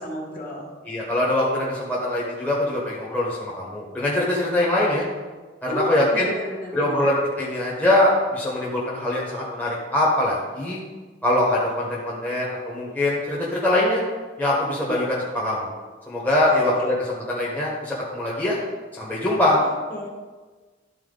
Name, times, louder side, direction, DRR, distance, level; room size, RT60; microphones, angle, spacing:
voice 1, 0.0-0.7 5.7-7.0 14.9-15.0 16.4-16.6 19.6-20.1, equal, 45° left, -3 dB, 2.0 m, -32 dB
voice 2, 0.9-5.0 5.6-6.3 6.7-10.8 11.2-14.0 14.4-15.7 16.1-16.9 17.3-18.6 18.9-19.6, left 1 dB, 10° left, -6 dB, 1.3 m, -23 dB
12.5 x 4.5 x 4.0 m, 1.3 s
head